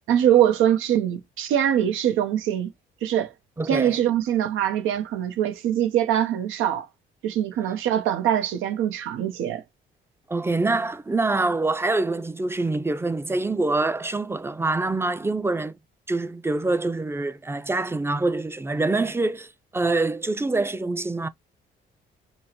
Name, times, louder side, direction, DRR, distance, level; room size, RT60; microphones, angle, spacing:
voice 1, 0.1-2.7 3.0-3.3 3.7-6.9 7.2-9.6, right 10 dB, 90° right, 0.8 m, -23 dB
voice 2, 3.6-3.9 10.3-15.8 16.1-21.3, right 2 dB, 10° right, 0.5 m, -25 dB
5.4 x 2.0 x 2.8 m
cardioid pair, 90°, 20 cm